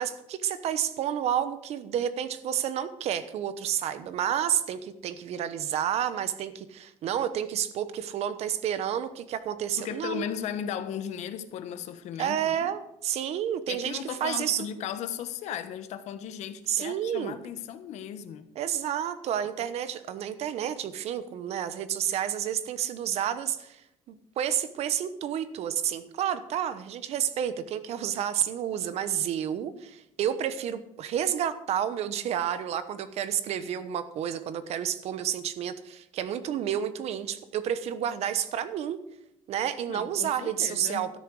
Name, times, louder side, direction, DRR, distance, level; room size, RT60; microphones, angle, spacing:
voice 1, 0.0-10.3 12.2-14.7 16.7-17.4 18.6-23.8 24.1-39.0 39.5-41.2, right 9 dB, 60° right, 1.1 m, -30 dB
voice 2, 9.8-12.7 13.7-18.5 39.9-41.2, left 9 dB, 75° left, 1.3 m, -36 dB
13.0 x 10.5 x 4.9 m
cardioid pair, 160°, 12 cm